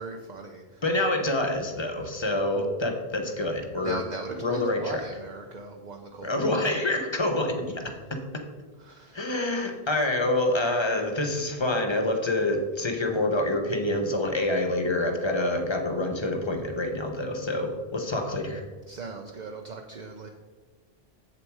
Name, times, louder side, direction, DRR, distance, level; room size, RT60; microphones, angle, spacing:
voice 1, 0.0-0.8 3.8-6.7 8.8-9.3 18.9-20.3, right 3 dB, 50° right, 3 dB, 0.7 m, -39 dB
voice 2, 0.8-4.0 4.4-5.0 6.2-8.2 9.1-18.6, left 1 dB, 30° left, 4 dB, 1.0 m, -27 dB
7.7 x 7.0 x 4.7 m, 1.4 s
omnidirectional pair, 1.0 m